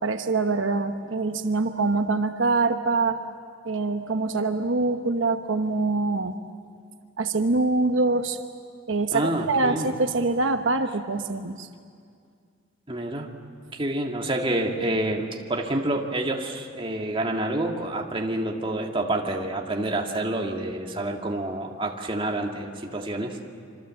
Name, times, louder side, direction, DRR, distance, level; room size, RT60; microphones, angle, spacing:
voice 1, 0.0-3.2 3.6-6.4 7.2-8.4 8.9-11.7, right 3 dB, 75° right, 7 dB, 1.0 m, -24 dB
voice 2, 9.1-9.9 12.9-13.3 13.7-23.4, right 1 dB, 25° right, 1 dB, 2.0 m, -28 dB
26.0 x 25.5 x 7.7 m, 2.2 s
head